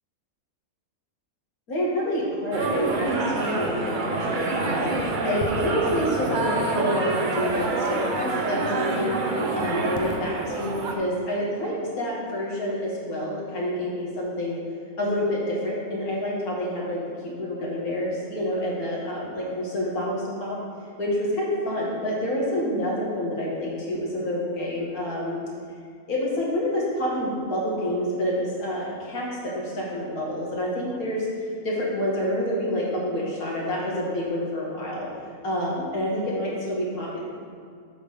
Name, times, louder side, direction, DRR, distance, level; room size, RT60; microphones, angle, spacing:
voice 1, 1.7-9.2 9.5-14.6 15.0-20.6 21.0-25.4 26.1-31.3 31.6-35.1 35.4-37.2, equal, 80° left, -5 dB, 2.3 m, -28 dB
sound 1, 2.5-10.9, right 3 dB, 50° right, 0.6 m, -27 dB
7.8 x 3.7 x 6.6 m, 2.3 s
omnidirectional pair, 1.5 m